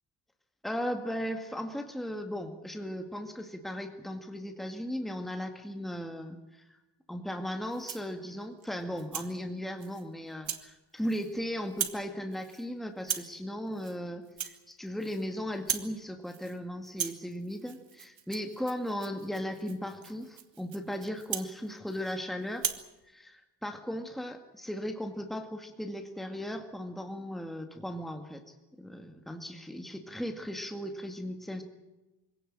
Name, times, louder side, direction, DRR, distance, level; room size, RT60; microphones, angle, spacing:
voice 1, 0.6-6.8 7.1-22.7 23.1-31.6, equal, ahead, 4 dB, 2.0 m, -37 dB
Rattle (instrument), 7.7-8.1 8.6-9.3 9.8-10.0 10.4-10.7 11.0-11.4 11.7-12.1 12.3-12.6 13.0-13.4 13.7-14.0 14.3-15.3 15.5-16.0 16.3-16.6 16.8-22.2 22.5-22.9, right 9 dB, 90° right, 2.3 m, -38 dB
24.5 x 17.5 x 8.9 m, 1.1 s
wide cardioid pair, 140°, 44 cm